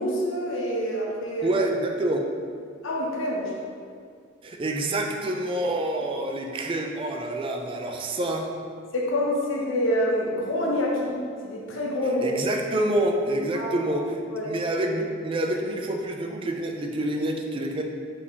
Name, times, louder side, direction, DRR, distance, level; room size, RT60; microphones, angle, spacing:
voice 1, 0.0-1.6 2.8-3.5 8.9-11.1 11.4-12.3 13.5-13.7 14.3-14.5, equal, 85° left, -2 dB, 0.7 m, -26 dB
voice 2, 1.4-2.3 4.4-8.5 12.2-17.8, right 1 dB, 25° right, 2 dB, 0.3 m, -27 dB
4.3 x 3.4 x 2.8 m, 2.2 s
head